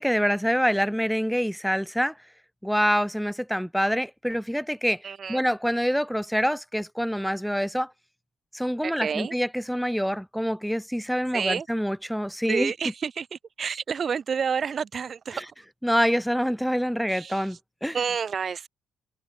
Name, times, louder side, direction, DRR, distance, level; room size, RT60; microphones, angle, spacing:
voice 1, 0.0-2.1 2.6-5.0 5.3-7.9 8.5-12.7 15.3-15.4 15.8-18.0, equal, ahead, 0.8 m, -26 dB
voice 2, 5.0-5.5 8.8-9.3 11.3-11.7 12.5-13.3 13.6-15.4 17.1-17.5 17.9-18.7, right 6 dB, 45° right, 0.4 m, -29 dB
figure-of-eight pair, 45°, 0 cm